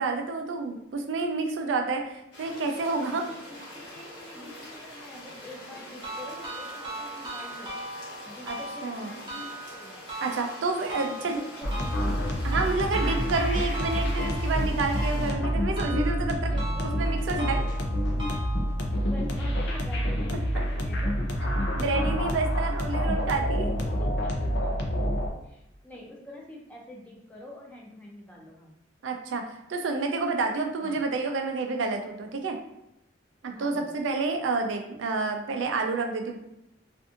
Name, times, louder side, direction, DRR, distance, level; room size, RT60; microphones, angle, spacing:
voice 1, 0.0-3.2 8.5-8.6 8.8-9.1 10.2-11.4 12.4-16.6 17.0-17.6 21.8-23.7 29.0-29.4 29.7-32.6 33.4-36.4, right 3 dB, 85° right, 4 dB, 0.4 m, -29 dB
sound 1, 2.3-15.3, left 1 dB, 90° left, 1.1 m, -45 dB
voice 2, 3.2-7.7 8.2-9.9 11.1-12.3 16.3-17.0 19.0-21.1 21.6-21.7 23.8-24.9 25.4-28.7 30.8-31.0 33.5-33.8, left 1 dB, 10° left, -3 dB, 0.5 m, -45 dB
sound 2, 6.0-19.0, right 1 dB, 25° right, 0.7 m, -39 dB
sound 3, 11.6-25.3, equal, 65° left, 0.5 m, -27 dB
2.5 x 2.5 x 2.5 m, 0.84 s
head